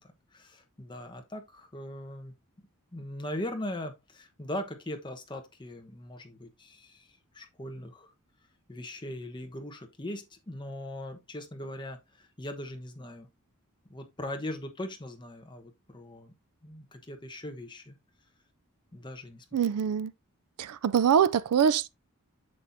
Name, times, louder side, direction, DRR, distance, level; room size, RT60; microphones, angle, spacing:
voice 1, 0.0-2.3 2.9-8.1 8.7-13.3 13.9-16.3 16.6-17.9 18.9-19.4, left 1 dB, 20° left, 1.1 m, -40 dB
voice 2, 19.5-20.1 20.6-21.9, right 8 dB, 80° right, 0.4 m, -24 dB
7.7 x 6.2 x 2.6 m
head